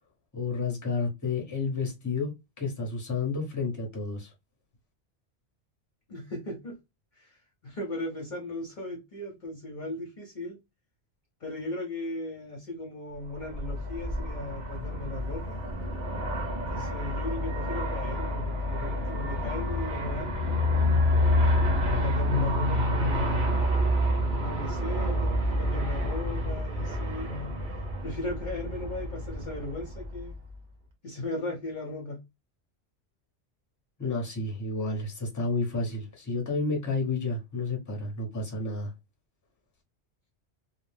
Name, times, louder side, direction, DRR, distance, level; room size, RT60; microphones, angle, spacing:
voice 1, 0.3-4.3 34.0-38.9, left 3 dB, 20° left, 0.8 m, -31 dB
voice 2, 6.1-6.8 7.2-7.4 7.6-10.6 11.4-15.6 16.7-20.9 22.0-23.5 24.3-27.6 28.0-30.4 31.0-32.2, left 2 dB, 50° left, 0.8 m, -37 dB
Aircraft, 13.3-30.6, left 1 dB, 50° right, 0.9 m, -28 dB
2.5 x 2.0 x 3.1 m
omnidirectional pair, 1.1 m